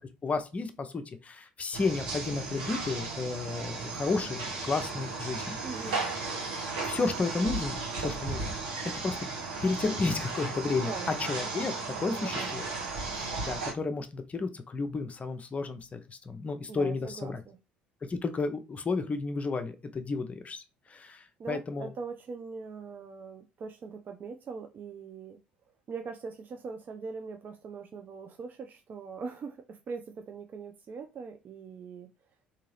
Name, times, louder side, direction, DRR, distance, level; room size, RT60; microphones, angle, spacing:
voice 1, 0.2-5.6 6.8-8.6 9.0-9.2 9.6-10.9 11.2-12.6 13.4-17.4 18.1-21.9, left 3 dB, 30° left, 0.6 m, -32 dB
sound 1, 1.7-13.7, right 3 dB, 70° right, 1.1 m, -35 dB
voice 2, 5.6-6.0 10.8-11.1 12.1-12.5 16.7-17.6 21.4-25.4 25.9-32.1, right 5 dB, 40° right, 0.5 m, -41 dB
3.6 x 2.8 x 3.1 m
figure-of-eight pair, 60°, 5 cm